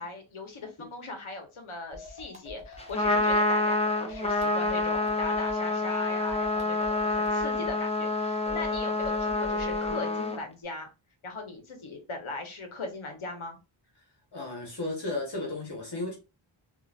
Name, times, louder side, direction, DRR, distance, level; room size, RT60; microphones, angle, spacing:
voice 1, 0.0-10.9 11.2-13.6, left 3 dB, 75° left, 1.1 m, -39 dB
sound 1, 1.9-3.5 4.1-5.6 6.3-7.8 8.5-10.0, left 1 dB, 15° right, 1.0 m, -44 dB
Trumpet, 2.8-10.4, left 2 dB, 15° left, 0.5 m, -27 dB
voice 2, 14.3-16.2, left 2 dB, 55° left, 1.2 m, -34 dB
3.9 x 2.7 x 2.4 m
wide cardioid pair, 80°, 49 cm